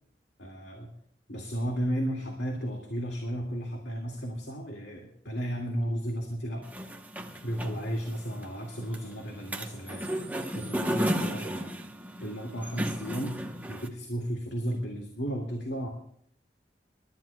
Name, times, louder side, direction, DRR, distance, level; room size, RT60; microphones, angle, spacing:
voice 1, 0.4-0.9 1.3-6.6 7.4-11.6 12.2-13.3 13.7-15.9, equal, 75° left, 0 dB, 2.1 m, -34 dB
sound 1, 6.6-13.9, equal, 10° right, 0.9 m, -34 dB
27.5 x 13.0 x 2.3 m, 0.64 s
head